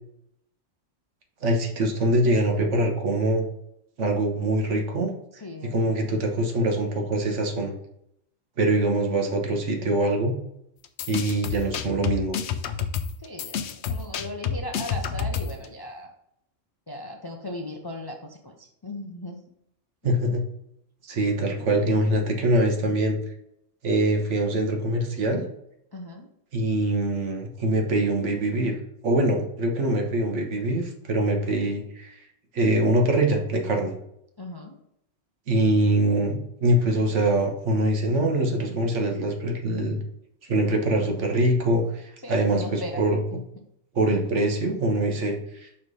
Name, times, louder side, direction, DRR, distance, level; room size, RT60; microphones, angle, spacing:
voice 1, 1.4-3.4 4.0-5.1 5.7-7.7 8.6-10.3 11.1-12.4 20.0-20.4 21.0-23.2 23.8-25.4 26.5-28.7 29.0-32.2 32.5-33.9 35.5-40.0 40.5-43.2 43.9-45.7, right 1 dB, 70° right, 2 dB, 1.4 m, -23 dB
voice 2, 5.4-5.9 13.2-16.1 16.9-19.4 20.0-20.2 25.9-26.3 34.4-34.8 42.2-43.0 43.3-43.4, left 1 dB, 30° left, 2 dB, 0.4 m, -37 dB
sound 1, 10.8-15.6, left 7 dB, 70° left, 0.8 m, -29 dB
5.8 x 3.2 x 5.3 m, 0.76 s
omnidirectional pair, 1.3 m